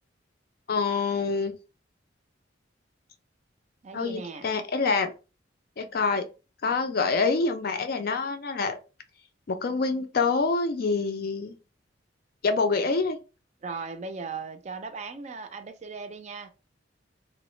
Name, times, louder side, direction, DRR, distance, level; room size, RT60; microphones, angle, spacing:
voice 1, 0.7-1.6 3.9-5.1 5.8-6.3 6.6-8.8 9.5-11.6 12.4-13.2, left 4 dB, 50° left, 0.4 m, -26 dB
voice 2, 3.8-4.5 13.6-16.5, right 4 dB, 35° right, 0.4 m, -37 dB
2.9 x 2.0 x 3.0 m
head